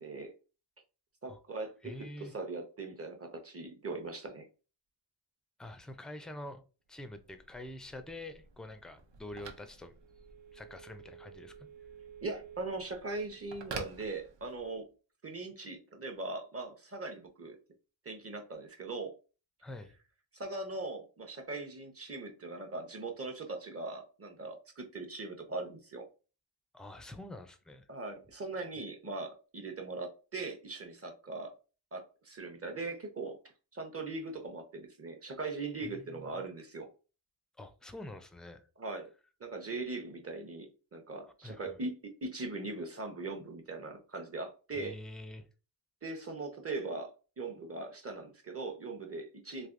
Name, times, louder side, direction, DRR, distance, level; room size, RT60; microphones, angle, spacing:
voice 1, 0.0-0.3 1.2-4.5 12.2-14.9 15.2-17.6 18.0-19.1 20.3-26.0 27.9-31.5 31.9-33.4 33.7-36.9 38.8-39.1 39.4-45.0 46.0-47.1 47.4-49.7, right 3 dB, 30° right, 0.8 m, -40 dB
voice 2, 1.8-2.3 5.6-6.6 6.9-9.9 10.5-11.7 19.6-19.9 26.7-27.9 35.8-36.4 37.6-38.6 41.4-41.8 44.7-45.5, left 1 dB, ahead, 0.3 m, -46 dB
Telephone, 6.9-14.8, right 5 dB, 70° right, 0.7 m, -50 dB
3.3 x 2.7 x 2.5 m
wide cardioid pair, 70°, 45 cm